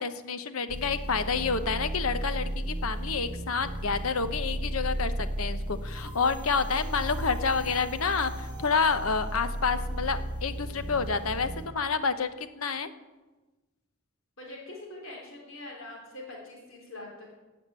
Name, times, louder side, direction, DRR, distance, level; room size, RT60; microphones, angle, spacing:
voice 1, 0.0-12.9, left 5 dB, 85° left, 11 dB, 1.0 m, -29 dB
sound 1, 0.7-11.7, right 1 dB, 5° right, 3.3 m, -34 dB
voice 2, 14.4-17.3, left 2 dB, 65° left, -2 dB, 3.5 m, -43 dB
17.0 x 6.0 x 8.7 m, 1.2 s
head